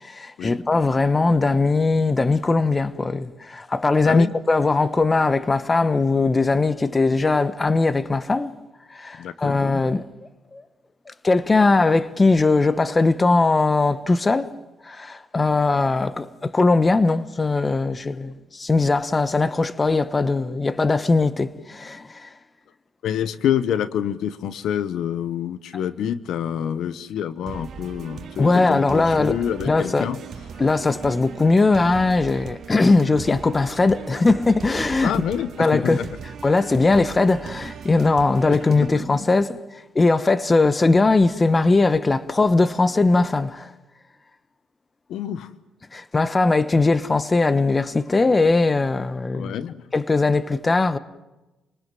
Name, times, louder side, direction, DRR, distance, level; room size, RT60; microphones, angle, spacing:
voice 1, 0.0-8.5 8.9-10.0 10.5-10.6 11.2-14.5 14.8-22.3 28.4-29.4 29.6-30.1 30.6-35.1 35.6-36.1 36.4-43.7 45.9-49.5 49.9-51.0, left 3 dB, 25° left, 1.1 m, -20 dB
voice 2, 9.2-9.6 23.0-30.2 35.0-36.1 38.5-38.6 45.1-45.5 49.3-49.8, left 9 dB, 75° left, 1.0 m, -27 dB
sound 1, 27.5-38.9, right 6 dB, 60° right, 2.1 m, -38 dB
29.0 x 19.5 x 7.6 m
cardioid pair, 90°, 0 cm